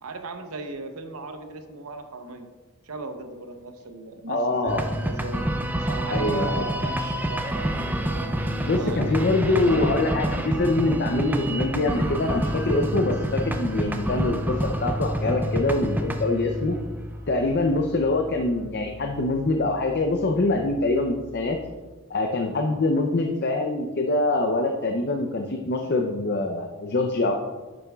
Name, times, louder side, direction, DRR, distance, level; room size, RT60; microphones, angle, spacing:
voice 1, 0.0-2.5 2.8-4.7 5.0-5.4 5.7-7.8 8.8-10.0, right 3 dB, 85° right, 7 dB, 0.8 m, -36 dB
voice 2, 4.3-4.8 6.1-6.5 8.7-16.8 17.3-21.6 22.1-27.4, left 2 dB, 50° left, 3 dB, 0.5 m, -24 dB
sound 1, 4.7-21.8, equal, 10° right, 0.4 m, -29 dB
10.0 x 6.9 x 2.3 m, 1.3 s
head